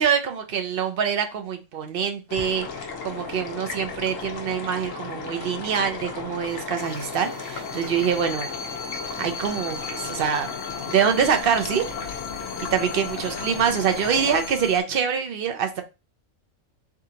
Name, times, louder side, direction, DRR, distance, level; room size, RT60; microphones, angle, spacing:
voice 1, 0.0-2.7 3.0-8.5 9.2-10.5 10.9-11.8 12.6-15.8, right 7 dB, 55° right, 0.8 m, -25 dB
sound 1, 2.3-14.4, left 4 dB, 80° left, 1.3 m, -35 dB
sound 2, 6.8-14.8, left 6 dB, 65° left, 0.8 m, -37 dB
3.8 x 3.6 x 2.8 m
omnidirectional pair, 1.3 m